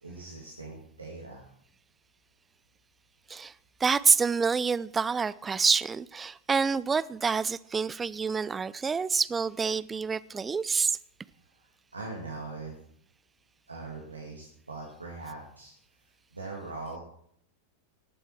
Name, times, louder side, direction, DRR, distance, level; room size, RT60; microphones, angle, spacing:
voice 1, 0.0-1.5 11.4-12.7 13.7-15.7 16.3-17.0, right 3 dB, 80° right, 2.3 m, -41 dB
voice 2, 3.8-11.0, right 5 dB, 15° right, 0.4 m, -27 dB
19.0 x 7.9 x 4.6 m
figure-of-eight pair, 90°, 0 cm